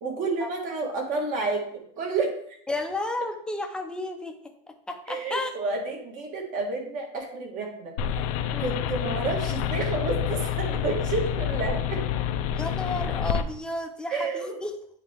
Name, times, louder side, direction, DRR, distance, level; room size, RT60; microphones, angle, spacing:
voice 1, 0.0-2.3 5.1-7.9 8.6-12.0 14.1-14.6, right 3 dB, 45° right, 1 dB, 1.7 m, -30 dB
voice 2, 2.7-4.4 4.9-5.5 8.5-8.8 12.6-14.8, left 2 dB, 5° left, 4 dB, 0.6 m, -32 dB
sound 1, 8.0-13.4, left 9 dB, 70° left, 0.6 m, -28 dB
9.0 x 3.4 x 3.4 m, 0.66 s
supercardioid pair, 140°, 18 cm